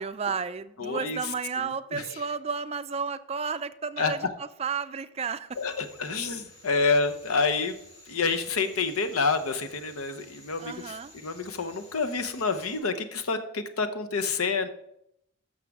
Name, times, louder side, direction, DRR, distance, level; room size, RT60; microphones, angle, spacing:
voice 1, 0.0-4.3 4.6-5.5 10.6-11.1, right 5 dB, 30° right, 12 dB, 0.3 m, -32 dB
voice 2, 0.8-1.3 1.6-2.1 4.0-4.1 5.6-7.8 8.1-14.7, left 4 dB, 85° left, 8 dB, 0.8 m, -28 dB
sound 1, 5.5-12.8, left 2 dB, 30° left, 2.2 m, -53 dB
12.0 x 6.5 x 3.6 m, 0.78 s
head